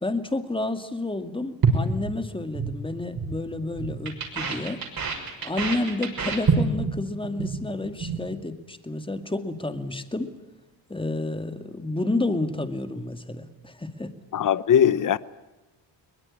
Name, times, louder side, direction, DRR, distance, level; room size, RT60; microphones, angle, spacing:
voice 1, 0.0-4.8 5.4-10.3 10.9-14.1, left 2 dB, 10° left, 2.3 m, -30 dB
sound 1, 1.6-2.7 3.0-3.3 3.6-7.0 7.2-7.6 7.8-8.2, right 5 dB, 50° right, 6.3 m, -26 dB
voice 2, 14.3-15.2, left 9 dB, 45° left, 0.9 m, -20 dB
22.5 x 20.5 x 9.9 m
cardioid pair, 85°, 44 cm